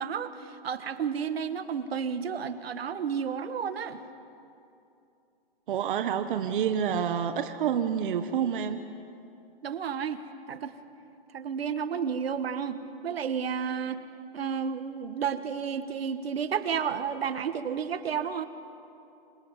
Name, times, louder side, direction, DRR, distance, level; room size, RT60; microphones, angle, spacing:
voice 1, 0.0-4.0 9.6-10.8 11.3-14.0 14.3-18.5, right 7 dB, 85° right, 10 dB, 1.9 m, -31 dB
voice 2, 5.7-8.8, right 8 dB, 60° right, 8 dB, 1.3 m, -28 dB
27.0 x 26.5 x 7.4 m, 2.7 s
hypercardioid pair, 155°, 30 cm